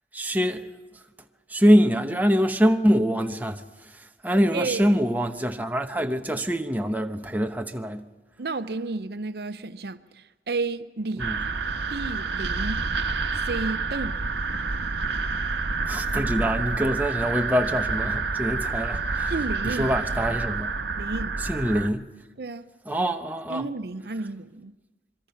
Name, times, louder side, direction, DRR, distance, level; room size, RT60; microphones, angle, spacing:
voice 1, 0.1-0.7 1.5-3.6 4.2-8.0 11.2-11.4 15.9-19.3 19.6-20.7 21.5-22.1 22.9-23.6, equal, 10° right, 0.9 m, -24 dB
voice 2, 4.5-5.0 8.4-11.3 11.9-12.9 13.3-14.2 19.3-19.9 21.0-21.3 22.4-22.6 23.5-24.7, right 3 dB, 60° right, 0.7 m, -32 dB
sound 1, 11.2-21.9, right 4 dB, 90° right, 1.1 m, -28 dB
26.0 x 22.5 x 5.7 m
head